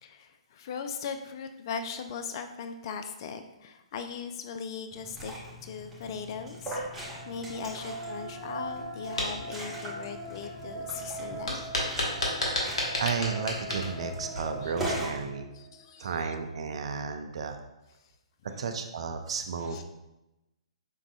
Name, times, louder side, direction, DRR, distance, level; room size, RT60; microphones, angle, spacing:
voice 1, 0.0-5.3 5.6-11.7 14.6-14.7 15.5-16.3 18.5-18.7 19.6-19.8, left 6 dB, 45° left, 7 dB, 0.4 m, -39 dB
Liquid, 4.9-15.2, equal, 10° right, 1.4 m, -41 dB
sound 1, 6.6-15.8, right 2 dB, 5° left, 1.2 m, -41 dB
sound 2, 9.0-9.3 11.5-14.7, left 1 dB, 70° left, 1.2 m, -31 dB
voice 2, 12.2-12.7 13.0-15.5 16.0-17.6 18.6-19.8, right 5 dB, 60° right, 7 dB, 0.5 m, -33 dB
5.4 x 3.6 x 2.3 m, 0.96 s
figure-of-eight pair, 125°, 3 cm